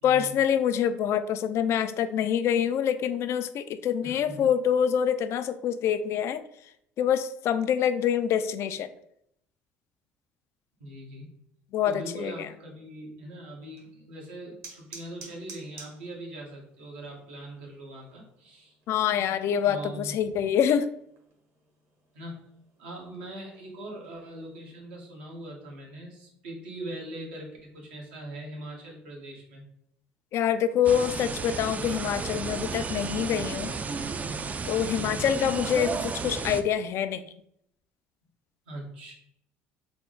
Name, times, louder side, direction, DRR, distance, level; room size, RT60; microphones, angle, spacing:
voice 1, 0.0-6.4 7.0-8.9 11.7-12.5 18.9-20.9 30.3-33.7 34.7-37.2, left 9 dB, 60° left, 12 dB, 0.3 m, -26 dB
voice 2, 4.0-4.5 10.8-11.3 11.8-18.7 19.6-20.1 22.1-22.5 22.8-29.6 35.0-35.3 38.7-39.1, right 1 dB, 90° right, -2 dB, 1.1 m, -41 dB
sound 1, 13.6-24.7, right 4 dB, 65° right, 1.1 m, -54 dB
sound 2, 30.8-36.6, right 4 dB, 30° right, 0.3 m, -33 dB
3.4 x 2.0 x 3.7 m, 0.73 s
hypercardioid pair, 70°, 5 cm